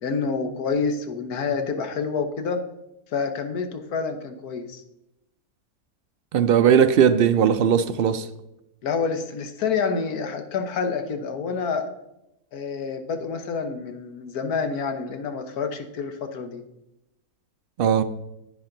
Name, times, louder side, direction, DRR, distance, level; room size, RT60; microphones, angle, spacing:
voice 1, 0.0-2.6 3.1-4.8 8.8-11.9 12.5-16.6, left 5 dB, 90° left, 1.5 m, -28 dB
voice 2, 6.3-8.3 17.8-18.0, right 8 dB, 80° right, 0.5 m, -18 dB
10.0 x 8.8 x 3.9 m
omnidirectional pair, 1.6 m